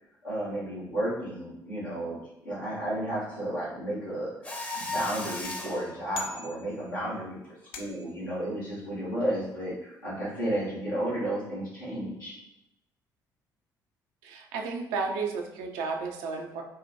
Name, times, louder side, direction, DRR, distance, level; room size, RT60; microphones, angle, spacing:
voice 1, 0.2-2.2 2.4-12.3, right 1 dB, 80° left, -9 dB, 1.2 m, -33 dB
Mechanisms, 4.4-5.9, left 2 dB, 15° left, 0.7 m, -35 dB
sound 1, 5.4-7.1 7.7-8.3, left 4 dB, 55° left, 0.5 m, -42 dB
voice 2, 14.2-16.6, right 4 dB, 65° right, 1 dB, 0.5 m, -33 dB
5.4 x 2.2 x 2.7 m, 0.87 s
figure-of-eight pair, 45°, 11 cm